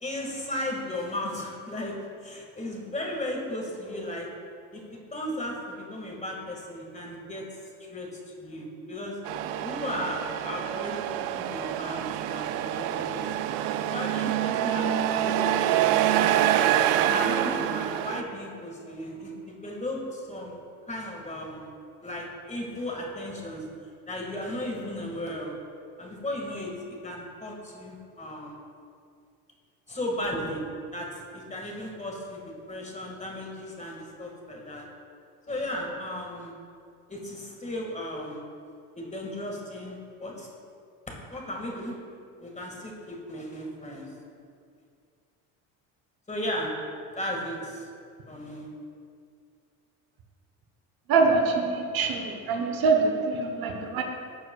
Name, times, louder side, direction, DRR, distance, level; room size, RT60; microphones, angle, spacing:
voice 1, 0.0-2.0 2.2-4.3 4.7-9.2 9.6-13.5 13.9-16.7 17.0-20.6 20.9-21.7 22.0-23.7 24.1-25.5 26.0-28.6 29.9-30.6 30.9-34.9 35.5-36.6 37.1-38.4 39.0-40.5 41.3-42.0 42.4-44.1 46.3-46.7 47.1-47.9 48.3-48.7, left 1 dB, 15° left, -1 dB, 1.8 m, -35 dB
Truck, 9.3-18.2, right 11 dB, 80° right, 0.5 m, -26 dB
voice 2, 51.1-54.0, right 4 dB, 55° right, 4 dB, 1.0 m, -24 dB
12.0 x 6.6 x 2.3 m, 2.4 s
hypercardioid pair, 70°, 42 cm